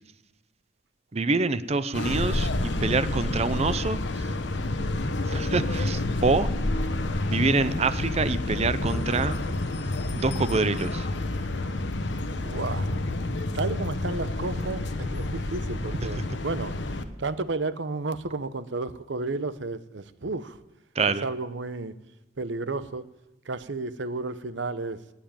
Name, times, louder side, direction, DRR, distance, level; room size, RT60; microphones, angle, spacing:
voice 1, 1.1-4.0 5.3-6.5 7.2-9.4 10.1-11.1 21.0-21.2, right 3 dB, 35° right, 14 dB, 0.6 m, -26 dB
sound 1, 1.9-17.0, left 2 dB, 70° left, 1.1 m, -29 dB
voice 2, 12.4-12.9 13.5-16.8 17.2-20.6 21.2-22.0 22.4-23.0 23.5-25.0, right 3 dB, 70° right, 14 dB, 0.8 m, -32 dB
18.5 x 7.4 x 9.0 m, 0.98 s
head